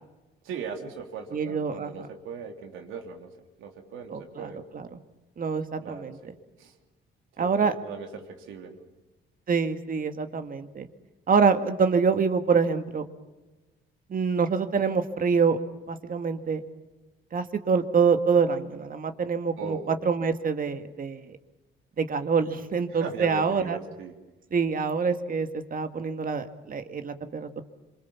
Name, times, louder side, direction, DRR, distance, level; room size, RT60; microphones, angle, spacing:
voice 1, 0.4-3.3 3.6-4.6 5.8-6.3 6.6-6.7 7.4-8.8 19.6-19.9 22.9-24.1, right 6 dB, 90° right, 4 dB, 3.3 m, -39 dB
voice 2, 1.3-2.1 4.1-5.0 5.4-6.3 7.4-7.7 9.5-10.9 11.3-13.1 14.1-15.6 15.9-16.6 17.3-21.3 22.0-23.8 24.5-27.6, right 5 dB, 45° right, 8 dB, 2.0 m, -26 dB
26.0 x 24.0 x 7.3 m, 1.1 s
cardioid pair, 90°, 20 cm